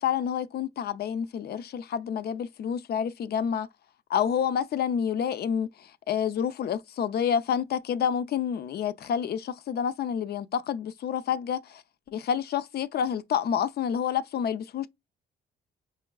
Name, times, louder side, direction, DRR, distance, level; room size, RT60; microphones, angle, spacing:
voice 1, 0.0-3.7 4.1-11.8 12.1-14.9, left 8 dB, 55° left, 0.4 m, -28 dB
4.6 x 3.1 x 2.2 m
cardioid pair, 90°, 20 cm